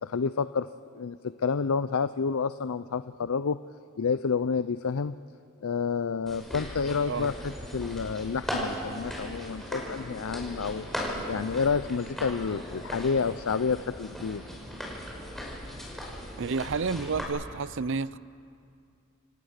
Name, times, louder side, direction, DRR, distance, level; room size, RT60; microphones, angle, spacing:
voice 1, 0.0-0.7 0.9-1.2 1.4-3.6 4.0-5.2 5.6-10.9 11.3-14.4, left 5 dB, 85° left, 13 dB, 0.5 m, -29 dB
sound 1, 6.3-17.2, equal, ahead, 5.5 m, -38 dB
voice 2, 16.4-18.2, right 4 dB, 60° right, 18 dB, 0.6 m, -30 dB
28.0 x 27.5 x 6.6 m, 2.5 s
head